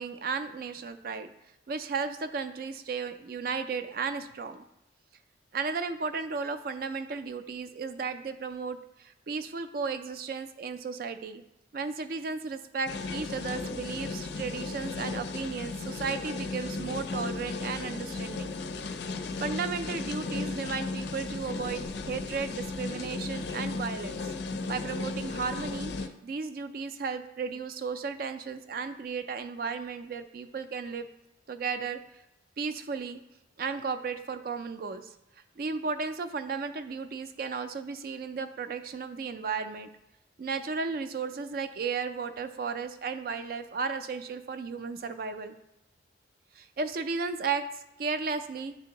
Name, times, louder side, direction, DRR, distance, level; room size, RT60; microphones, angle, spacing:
voice 1, 0.0-1.3 1.7-4.6 5.5-11.4 11.7-18.5 19.4-24.2 24.7-31.1 31.5-32.0 32.6-33.2 33.6-35.1 35.6-39.9 40.4-45.5 46.5-48.8, right 5 dB, 50° right, 10 dB, 0.3 m, -34 dB
sound 1, 12.9-26.1, left 3 dB, 60° left, 0.4 m, -35 dB
9.5 x 3.4 x 2.9 m, 0.90 s
head